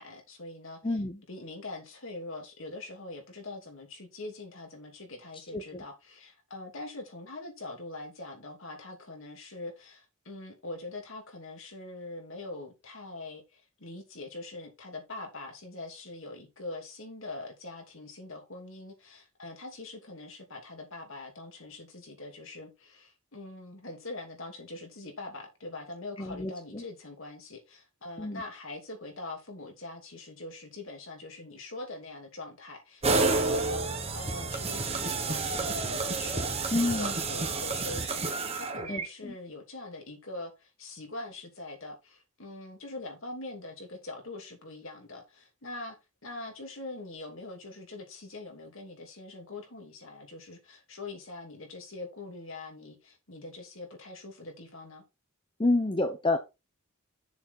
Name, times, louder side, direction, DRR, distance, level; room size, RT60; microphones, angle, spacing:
voice 1, 0.0-1.0 1.3-46.0 46.2-55.0, left 2 dB, 65° left, 3.0 m, -43 dB
voice 2, 0.8-1.2 5.5-5.8 26.2-26.8 28.2-28.4 36.7-37.1 38.9-39.3 55.6-56.4, left 2 dB, 25° left, 0.9 m, -29 dB
sound 1, 33.0-39.1, right 3 dB, 30° right, 1.4 m, -30 dB
7.0 x 6.1 x 4.5 m
head